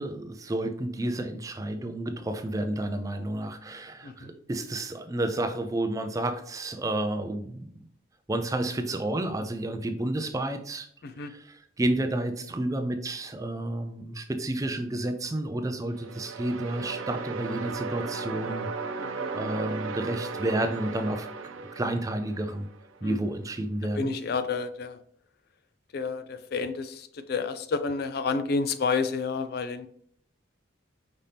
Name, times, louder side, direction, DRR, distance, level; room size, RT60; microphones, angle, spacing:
voice 1, 0.0-7.7 8.3-10.9 11.2-11.3 11.8-18.7 19.3-21.3 21.6-22.7 23.0-24.1, right 1 dB, 15° right, 8 dB, 0.4 m, -30 dB
sound 1, 15.9-22.9, right 4 dB, 90° right, 0.6 m, -36 dB
voice 2, 19.0-19.3 23.0-23.2 23.9-25.0 25.9-29.9, left 4 dB, 50° left, 11 dB, 0.4 m, -30 dB
5.2 x 3.4 x 2.8 m, 0.64 s
head